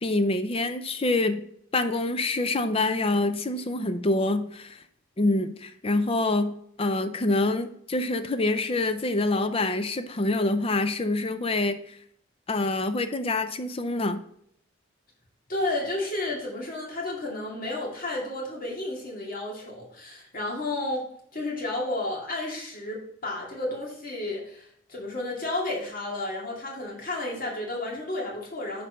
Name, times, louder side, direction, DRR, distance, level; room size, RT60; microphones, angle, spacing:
voice 1, 0.0-1.4 1.7-4.8 5.2-12.0 12.5-14.2, left 2 dB, 30° left, 9 dB, 0.6 m, -26 dB
voice 2, 15.5-21.1 21.3-28.9, left 2 dB, 45° left, -3 dB, 2.3 m, -32 dB
6.4 x 4.4 x 5.0 m, 0.68 s
head